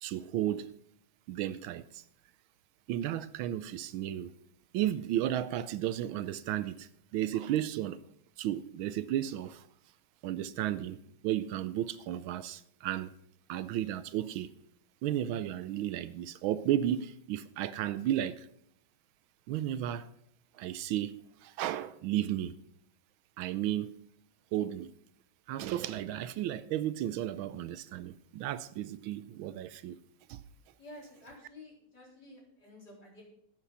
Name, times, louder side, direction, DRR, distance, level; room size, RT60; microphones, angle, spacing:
voice 1, 0.0-0.7 1.3-2.0 2.9-4.3 4.7-8.0 8.4-9.7 10.2-13.1 13.5-14.5 15.0-18.5 19.5-20.1 20.6-22.6 23.4-24.0 24.5-24.9 25.5-30.0 30.3-30.4, right 12 dB, 80° right, 1.3 m, -33 dB
voice 2, 30.8-33.2, left 1 dB, 50° left, 4.5 m, -51 dB
10.5 x 8.3 x 5.7 m
omnidirectional pair, 2.3 m